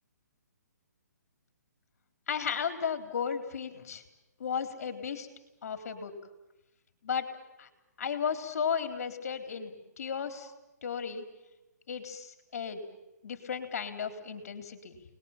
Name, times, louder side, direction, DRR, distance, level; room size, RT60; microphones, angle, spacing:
voice 1, 2.3-4.0 4.4-5.3 5.6-6.1 7.0-7.3 7.6-7.7 8.0-10.5 10.8-11.2 11.9-12.8 13.2-15.0, left 7 dB, 55° left, 7 dB, 3.9 m, -34 dB
29.0 x 21.0 x 7.4 m, 0.95 s
hypercardioid pair, 155°, 10 cm